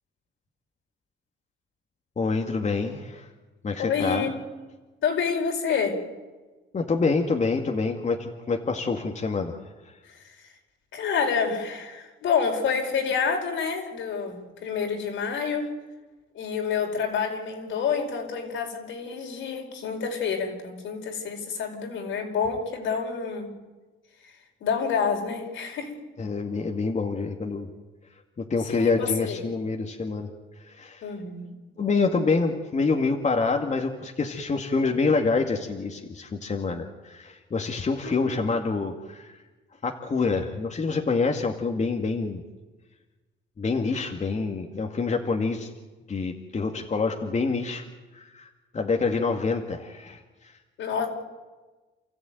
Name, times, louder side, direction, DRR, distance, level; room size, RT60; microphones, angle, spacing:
voice 1, 2.2-3.3 3.6-4.3 6.7-9.6 26.2-27.7 28.4-30.3 30.7-31.0 31.8-39.3 39.8-42.4 43.6-45.7 46.1-47.8 48.1-50.2, left 4 dB, 35° left, 3 dB, 2.2 m, -26 dB
voice 2, 3.8-4.3 5.0-6.0 10.9-15.7 16.3-23.5 24.6-25.9 28.6-29.4 31.0-31.5 38.0-38.3 50.8-51.1, left 6 dB, 80° left, 2 dB, 5.1 m, -28 dB
29.0 x 14.0 x 9.3 m, 1.2 s
cardioid pair, 90°, 20 cm